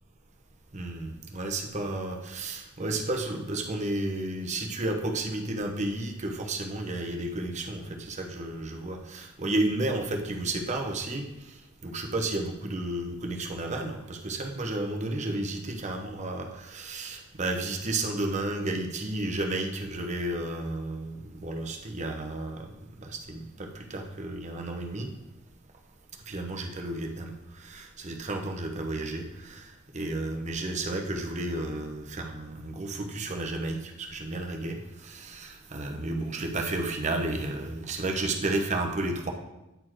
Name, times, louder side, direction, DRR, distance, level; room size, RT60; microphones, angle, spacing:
voice 1, 0.7-11.5 11.8-22.7 23.0-25.1 26.3-39.3, right 2 dB, 35° right, 3 dB, 0.8 m, -32 dB
9.2 x 4.3 x 4.5 m, 0.96 s
head